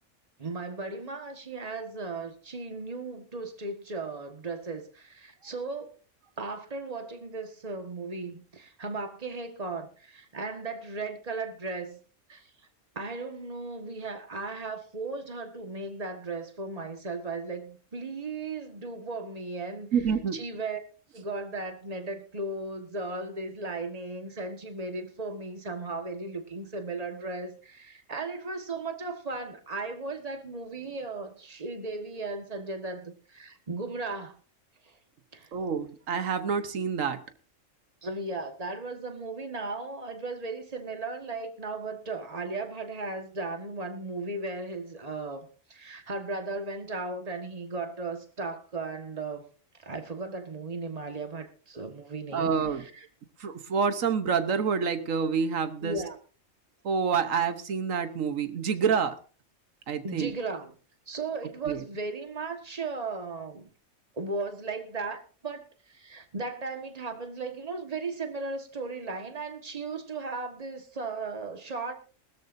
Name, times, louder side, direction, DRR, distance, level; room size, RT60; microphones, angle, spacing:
voice 1, 0.4-5.9 6.4-12.0 12.3-12.5 13.0-19.9 20.3-20.8 21.1-34.4 34.8-35.0 35.3-35.5 38.0-49.5 49.8-53.1 55.8-56.2 60.0-60.7 61.1-63.7 64.1-71.9, right 3 dB, 30° right, 1.6 m, -36 dB
voice 2, 19.9-20.4 35.5-37.2 52.3-52.8 53.4-56.0 56.8-59.2 59.9-60.3 61.6-61.8, right 6 dB, 80° right, 1.4 m, -27 dB
20.0 x 13.5 x 2.7 m
omnidirectional pair, 1.3 m